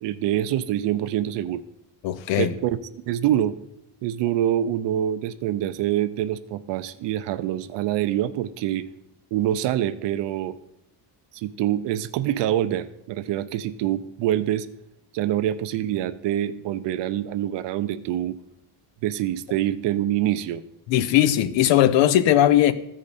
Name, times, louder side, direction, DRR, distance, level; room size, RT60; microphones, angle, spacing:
voice 1, 0.0-1.6 2.4-2.8 3.1-3.5 4.0-8.9 9.3-10.5 11.3-14.7 15.1-18.4 19.0-20.6, right 12 dB, 70° right, 14 dB, 0.6 m, -25 dB
voice 2, 2.0-2.5 20.9-22.7, left 12 dB, 80° left, 13 dB, 0.7 m, -18 dB
14.5 x 5.1 x 4.1 m, 0.84 s
cardioid pair, 140°, 44 cm